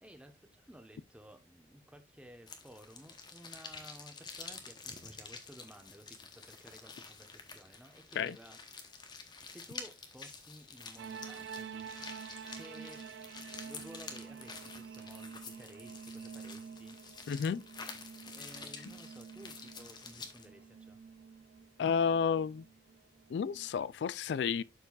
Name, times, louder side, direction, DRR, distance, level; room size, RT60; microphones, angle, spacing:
voice 1, 0.0-8.6 9.0-11.9 12.5-13.0 13.5-17.0 18.3-21.0, equal, 5° right, 1.0 m, -55 dB
sound 1, 2.5-20.5, left 4 dB, 25° left, 0.9 m, -49 dB
sound 2, 11.0-23.7, right 6 dB, 70° right, 0.4 m, -49 dB
voice 2, 17.3-17.6 21.8-22.6 23.3-24.6, left 6 dB, 70° left, 0.3 m, -31 dB
11.5 x 4.5 x 2.4 m
head